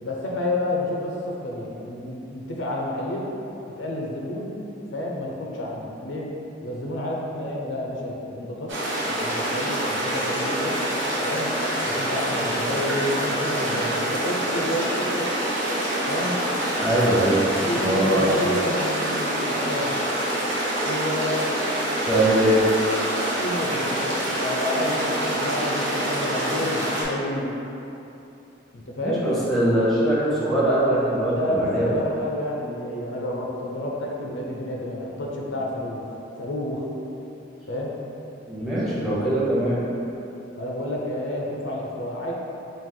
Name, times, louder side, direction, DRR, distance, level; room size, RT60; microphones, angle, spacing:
voice 1, 0.0-3.3 3.8-4.6 4.9-6.3 6.6-8.7 9.1-10.8 11.2-11.5 11.8-15.3 16.1-16.4 17.6-19.9 20.8-21.4 23.4-24.1 24.4-27.5 28.7-29.3 31.3-36.8 37.7-38.0 40.6-42.3, left 1 dB, 80° left, -2 dB, 0.6 m, -30 dB
sound 1, 8.7-27.0, right 1 dB, 85° right, 1.0 m, -26 dB
voice 2, 16.8-17.4 17.8-18.3 22.1-22.6 29.0-31.9 38.5-39.8, right 1 dB, ahead, -8 dB, 0.8 m, -22 dB
4.7 x 2.5 x 3.8 m, 2.9 s
head